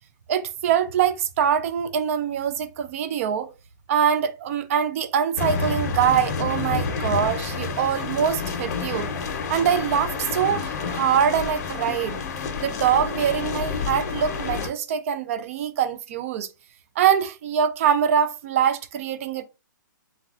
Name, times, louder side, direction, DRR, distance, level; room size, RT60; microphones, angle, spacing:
voice 1, 0.3-3.5 3.9-9.1 9.5-12.2 12.6-16.5 17.0-19.4, right 8 dB, 45° right, 0.4 m, -23 dB
sound 1, 5.4-14.7, left 5 dB, 50° left, 0.7 m, -29 dB
3.2 x 2.3 x 2.4 m
hypercardioid pair, 150°, 11 cm